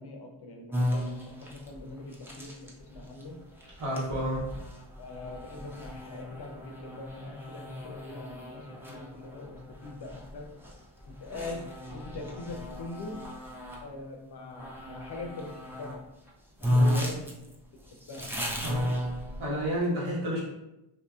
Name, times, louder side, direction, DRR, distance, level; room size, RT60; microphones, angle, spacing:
voice 1, 0.0-3.5 5.0-10.6 11.0-13.4 13.8-16.1 16.6-17.4 17.7-18.8, left 2 dB, 55° left, 3 dB, 0.6 m, -43 dB
sound 1, 0.7-13.9 14.5-16.0 16.3-16.4 16.6-19.7, left 1 dB, 5° right, 0.5 m, -34 dB
voice 2, 3.8-4.5 11.3-11.4 16.6-17.1 18.6-18.9 19.4-20.4, equal, 80° right, -6 dB, 1.4 m, -31 dB
2.7 x 2.7 x 2.3 m, 0.91 s
cardioid pair, 70°, 48 cm